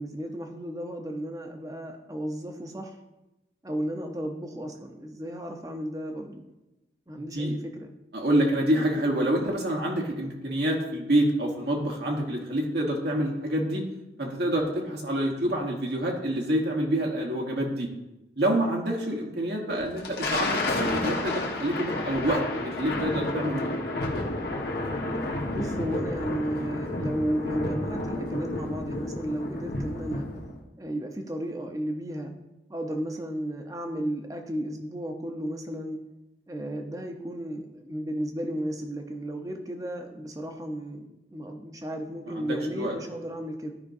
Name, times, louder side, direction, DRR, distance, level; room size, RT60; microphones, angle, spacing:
voice 1, 0.0-3.0 3.6-6.5 7.1-7.9 25.5-30.3 30.8-32.3 32.7-36.0 36.5-43.7, equal, 20° right, 4 dB, 0.7 m, -34 dB
voice 2, 7.1-7.5 8.1-13.8 14.2-17.9 18.4-23.7 26.6-26.7 42.3-43.0, right 1 dB, 65° right, -1 dB, 1.2 m, -27 dB
Thunder, 19.8-30.6, left 2 dB, 60° left, 1.2 m, -31 dB
13.5 x 5.2 x 2.6 m, 0.97 s
head